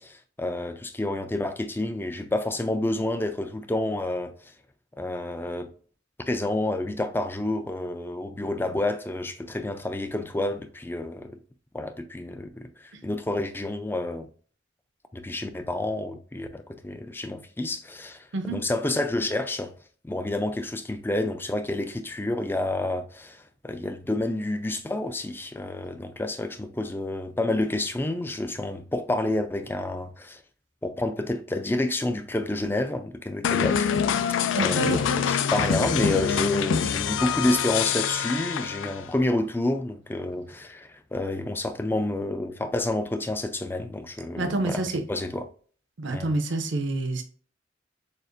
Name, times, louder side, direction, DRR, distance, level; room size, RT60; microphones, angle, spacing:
voice 1, 0.0-4.5 5.0-5.7 6.3-11.4 11.7-14.3 15.1-19.8 20.0-30.4 30.8-33.9 34.5-44.8 45.1-45.5 46.1-46.3, left 2 dB, 10° left, 0.4 m, -29 dB
sound 1, 33.4-39.1, left 7 dB, 85° left, 0.4 m, -25 dB
voice 2, 34.5-35.0 44.4-45.0 46.0-47.2, right 2 dB, 75° right, 0.7 m, -27 dB
6.5 x 2.5 x 2.5 m
head